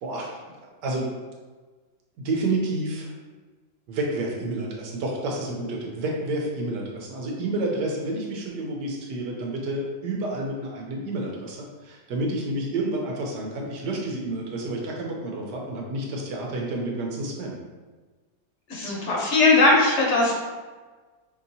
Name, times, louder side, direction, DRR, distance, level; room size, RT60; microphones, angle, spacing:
voice 1, 0.0-0.4 0.8-1.1 2.2-3.1 3.9-17.5, right 2 dB, 90° right, -1 dB, 1.4 m, -29 dB
voice 2, 18.7-20.3, left 3 dB, 55° left, -2 dB, 1.0 m, -19 dB
5.2 x 2.8 x 2.7 m, 1.3 s
omnidirectional pair, 1.8 m